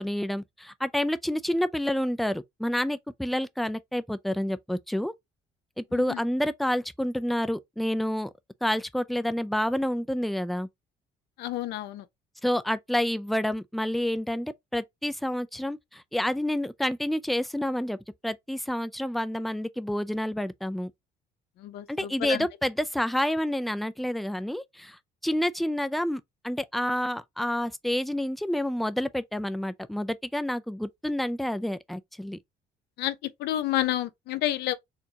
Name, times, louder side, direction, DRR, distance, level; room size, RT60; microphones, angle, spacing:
voice 1, 0.0-5.1 5.8-8.3 8.6-10.7 12.4-18.0 18.2-20.9 21.9-32.4, left 1 dB, ahead, 0.4 m, -29 dB
voice 2, 11.4-12.0 21.6-22.5 33.0-33.1 33.4-34.7, left 13 dB, 75° left, 0.6 m, -29 dB
4.4 x 2.7 x 2.8 m
cardioid pair, 110°, 17 cm